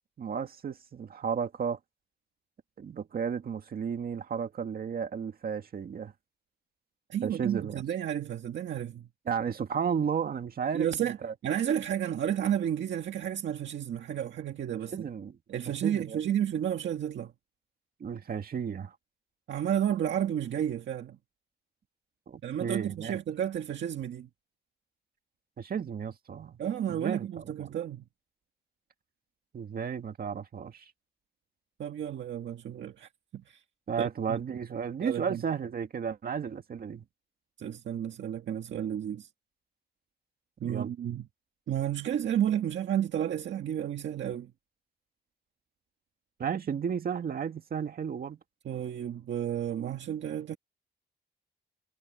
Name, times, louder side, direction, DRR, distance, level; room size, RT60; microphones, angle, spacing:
voice 1, 0.2-1.8 2.8-6.1 7.2-7.8 9.3-11.3 14.9-15.4 15.7-16.2 18.0-19.0 22.3-23.2 25.6-26.6 26.9-27.7 29.5-30.9 33.9-37.0 40.6-40.9 46.4-48.4, right 7 dB, 55° right, 2.0 m, -33 dB
voice 2, 7.1-9.1 10.7-11.2 11.4-15.1 15.5-17.3 19.5-21.2 22.4-24.3 26.6-28.0 31.8-33.6 34.0-34.4 35.0-35.4 37.6-39.3 40.6-41.3 41.7-44.5 48.7-50.6, right 10 dB, 85° right, 1.8 m, -32 dB
wide cardioid pair, 145°, 18 cm